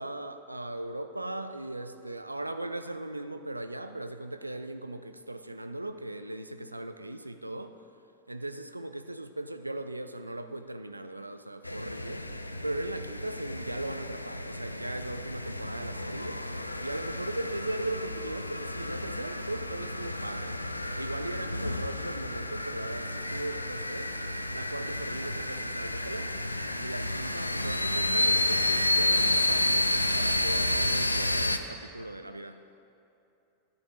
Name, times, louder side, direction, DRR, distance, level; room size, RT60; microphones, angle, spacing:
voice 1, 0.0-7.8 8.3-12.3 12.6-16.4 16.8-20.6 21.0-24.1 24.5-26.3 26.7-32.6, right 1 dB, 85° right, 10 dB, 0.4 m, -38 dB
sound 1, 11.6-31.6, left 1 dB, 85° left, 0.5 m, -31 dB
11.5 x 10.0 x 4.8 m, 2.8 s
figure-of-eight pair, 90°, 0 cm